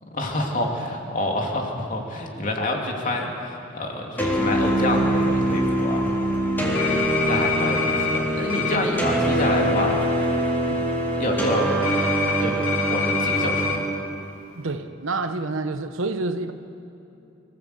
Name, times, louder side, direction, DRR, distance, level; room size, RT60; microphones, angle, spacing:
voice 1, 0.0-6.2 7.3-10.0 11.2-11.8 12.4-13.9, left 1 dB, 40° left, 1 dB, 2.9 m, -27 dB
sound 1, 4.2-13.8, right 1 dB, 10° left, 4.0 m, -23 dB
voice 2, 6.6-7.3 10.7-10.9 14.5-16.5, right 3 dB, 80° right, 9 dB, 1.1 m, -29 dB
sound 2, 6.7-8.2 8.5-8.8 11.8-13.8, left 7 dB, 85° left, 2.6 m, -26 dB
24.0 x 16.0 x 8.2 m, 2.8 s
head